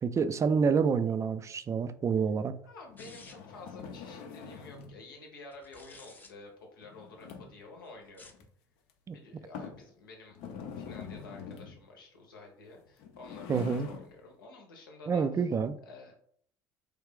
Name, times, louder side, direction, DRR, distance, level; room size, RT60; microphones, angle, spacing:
voice 1, 0.0-2.5 9.1-9.2 13.5-13.9 15.1-15.7, right 5 dB, 25° right, 0.3 m, -28 dB
voice 2, 2.6-8.3 9.1-10.4 10.8-15.5 15.8-16.1, left 3 dB, 85° left, 0.8 m, -50 dB
sound 1, 2.9-5.0 6.8-7.7 8.3-8.4 8.9-9.0 9.5-9.9 10.3-11.8 12.9-14.1, left 6 dB, 60° left, 0.5 m, -44 dB
sound 2, 3.0-3.6 5.5-6.3 8.0-8.5, left 3 dB, 15° left, 0.6 m, -53 dB
3.2 x 2.3 x 3.5 m
hypercardioid pair, 65°, 11 cm